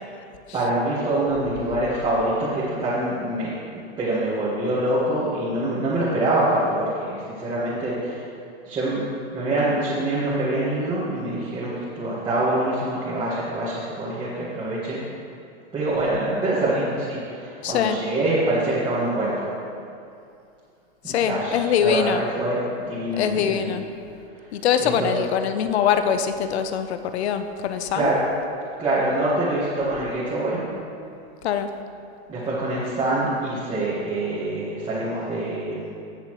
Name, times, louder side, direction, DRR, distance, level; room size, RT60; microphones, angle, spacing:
voice 1, 0.5-8.2 8.6-9.0 9.3-15.0 15.7-19.5 21.0-22.6 22.9-23.8 24.8-25.1 27.9-28.2 28.8-30.6 32.3-35.9, right 1 dB, 15° right, -9 dB, 1.7 m, -25 dB
voice 2, 17.6-18.0 21.1-22.2 23.2-23.9 24.5-28.1 31.4-31.7, left 8 dB, 75° left, 9 dB, 0.8 m, -23 dB
18.0 x 6.7 x 3.2 m, 2.5 s
supercardioid pair, 155°, 33 cm